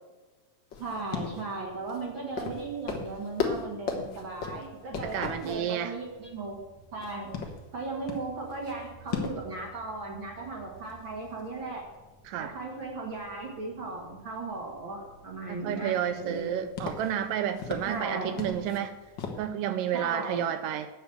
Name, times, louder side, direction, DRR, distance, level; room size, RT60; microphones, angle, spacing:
sound 1, 0.7-19.5, left 5 dB, 65° left, 1.1 m, -40 dB
voice 1, 0.8-6.6 6.9-7.3 7.7-11.8 12.4-16.7 17.8-18.4 19.9-20.5, right 3 dB, 45° right, -1 dB, 1.8 m, -37 dB
voice 2, 5.0-5.9 12.3-12.5 15.5-19.0 19.4-20.9, right 10 dB, 80° right, 10 dB, 2.1 m, -31 dB
9.2 x 6.9 x 7.8 m, 1.2 s
omnidirectional pair, 4.1 m